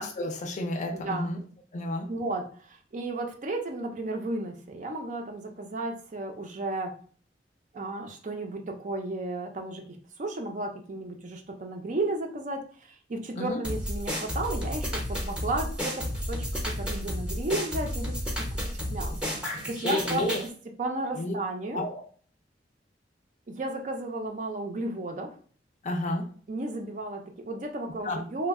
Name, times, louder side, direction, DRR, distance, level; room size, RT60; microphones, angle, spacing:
voice 1, 0.0-1.4 1.7-2.1 13.4-13.6 19.8-20.4 21.2-21.3 21.7-22.0 25.8-26.3 28.0-28.2, left 1 dB, 40° left, 4 dB, 0.5 m, -31 dB
voice 2, 0.9-1.3 2.1-7.0 7.7-9.9 10.2-18.6 18.9-19.1 19.4-20.4 20.8-21.8 23.5-25.4 26.5-28.5, right 2 dB, 45° right, 3 dB, 0.5 m, -33 dB
sound 1, 13.6-20.5, equal, 5° right, 0.7 m, -32 dB
3.0 x 2.1 x 3.5 m, 0.44 s
head